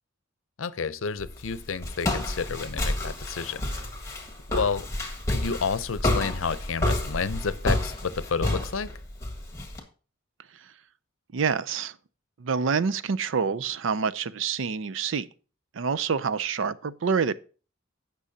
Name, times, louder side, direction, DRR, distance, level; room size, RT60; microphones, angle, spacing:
voice 1, 0.6-3.7 4.5-4.9 5.3-8.9, left 5 dB, 90° left, 0.6 m, -30 dB
Walk footsteps, 1.2-9.8, left 1 dB, 15° left, 1.7 m, -30 dB
voice 2, 11.3-11.9 12.4-15.3 15.7-17.4, right 5 dB, 70° right, 0.5 m, -27 dB
16.5 x 6.2 x 2.8 m
head